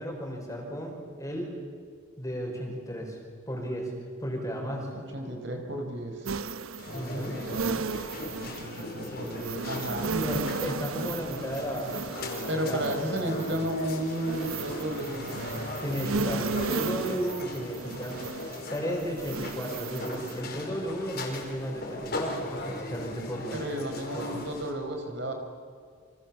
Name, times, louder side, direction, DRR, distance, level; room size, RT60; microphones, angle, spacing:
voice 1, 0.0-1.5 2.2-3.2 3.5-3.9 4.2-4.9 6.9-7.4 9.1-9.2 10.0-13.5 15.8-18.2 18.7-23.6 24.1-24.4, equal, 15° left, 1 dB, 5.5 m, -34 dB
voice 2, 4.9-6.4 6.9-7.8 8.4-10.1 12.5-15.4 23.5-25.3, right 1 dB, 55° right, 4 dB, 4.6 m, -33 dB
sound 1, 6.3-20.4, right 4 dB, 80° right, 1.0 m, -35 dB
sound 2, 6.8-24.7, left 2 dB, 45° left, 4.8 m, -39 dB
sound 3, 12.2-14.6, left 2 dB, 85° left, 2.2 m, -46 dB
29.5 x 26.5 x 7.4 m, 2.1 s
head